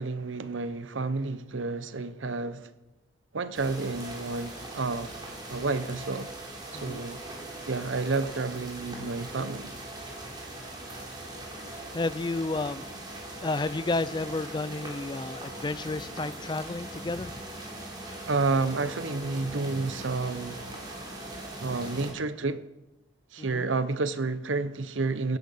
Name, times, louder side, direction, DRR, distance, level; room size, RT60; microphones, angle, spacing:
voice 1, 0.0-2.7 3.3-5.1 5.5-6.3 6.7-7.2 7.7-9.7 18.3-20.7 21.6-22.6 23.3-25.4, right 3 dB, 90° right, 0.9 m, -30 dB
sound 1, 3.5-22.1, right 1 dB, 25° right, 3.5 m, -41 dB
voice 2, 6.7-7.0 11.9-12.8 13.4-17.3 23.4-23.7, left 3 dB, 25° left, 0.4 m, -31 dB
16.0 x 10.0 x 5.6 m
head